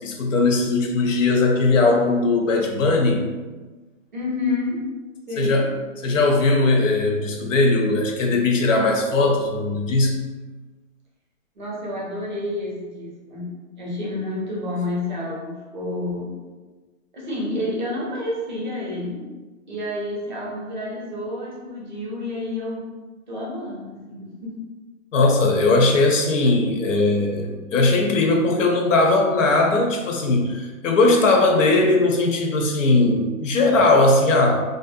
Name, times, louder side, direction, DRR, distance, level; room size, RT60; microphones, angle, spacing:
voice 1, 0.0-3.2 5.4-5.7 6.0-10.2 25.1-34.6, left 2 dB, 70° left, 2 dB, 0.6 m, -19 dB
voice 2, 4.1-4.9 5.3-5.7 11.6-16.4 17.1-19.3 19.7-22.9 23.3-24.6, left 2 dB, 35° right, -4 dB, 0.5 m, -29 dB
2.5 x 2.0 x 2.5 m, 1.3 s
hypercardioid pair, 175°, 40 cm